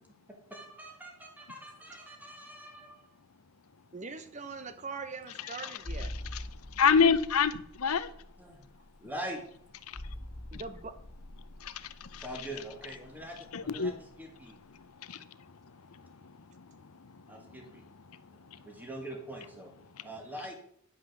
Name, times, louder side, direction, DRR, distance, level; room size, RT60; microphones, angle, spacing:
voice 1, 0.3-3.0 8.4-8.6 9.0-9.4 12.2-14.6 17.3-17.8 18.6-19.7 20.0-20.5, right 1 dB, 10° right, 1.8 m, -43 dB
voice 2, 3.9-6.1 10.5-10.9, right 4 dB, 30° right, 0.8 m, -41 dB
sound 1, 5.8-14.2 14.5-14.7, left 1 dB, 25° left, 0.7 m, -45 dB
voice 3, 6.7-8.1 9.9-10.0 10.5-10.6 11.6-12.2 13.5-13.9 15.1-15.2 16.7-16.8, left 6 dB, 80° left, 0.7 m, -26 dB
10.0 x 6.0 x 6.6 m
head